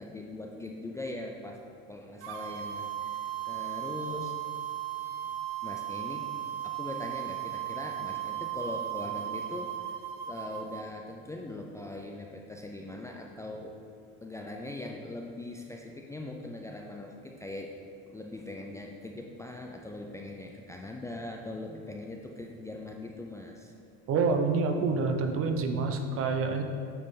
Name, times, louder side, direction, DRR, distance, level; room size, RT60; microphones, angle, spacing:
voice 1, 0.0-1.6 1.9-4.3 5.6-6.3 6.6-10.0 10.3-13.7 14.2-17.7 18.1-23.7, left 2 dB, 10° left, 1 dB, 0.4 m, -41 dB
sound 1, 2.2-10.8, right 11 dB, 80° right, 0.6 m, -36 dB
voice 2, 24.1-26.6, right 4 dB, 45° right, 6 dB, 0.7 m, -27 dB
8.8 x 3.9 x 3.7 m, 2.5 s
supercardioid pair, 110°, 31 cm